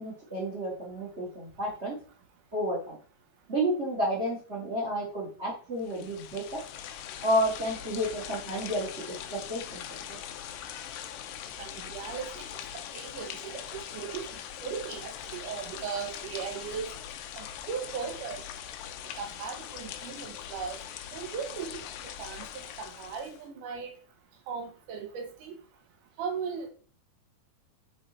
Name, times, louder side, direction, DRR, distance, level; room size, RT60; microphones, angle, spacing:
voice 1, 0.0-2.0 2.5-3.0 3.5-6.6 7.2-10.2, equal, 30° right, -3 dB, 1.2 m, -31 dB
sound 1, 5.8-23.4, left 10 dB, 75° left, 2.1 m, -42 dB
voice 2, 11.6-12.6 12.9-16.9 17.3-18.4 19.2-20.8 21.1-23.9 24.5-25.6 26.2-26.7, right 6 dB, 65° right, 4 dB, 2.5 m, -38 dB
8.3 x 3.8 x 4.2 m, 0.41 s
omnidirectional pair, 4.3 m